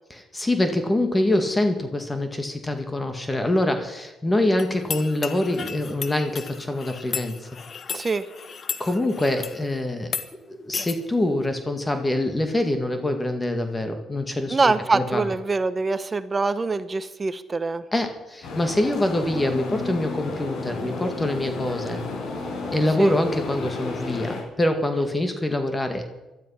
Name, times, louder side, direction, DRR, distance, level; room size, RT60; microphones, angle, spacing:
voice 1, 0.1-7.5 8.8-10.1 10.6-15.2 17.9-22.0 22.7-26.0, left 1 dB, 15° left, 6 dB, 1.9 m, -25 dB
sound 1, 4.6-9.6 10.0-10.3 10.7-11.0, left 6 dB, 50° left, 1.3 m, -34 dB
voice 2, 7.9-8.2 14.5-17.8 23.0-23.2, right 3 dB, 30° right, 14 dB, 0.8 m, -24 dB
sound 2, 18.4-24.4, left 3 dB, 75° left, 5.1 m, -32 dB
17.0 x 12.5 x 5.8 m, 1.0 s
cardioid pair, 90°, 0 cm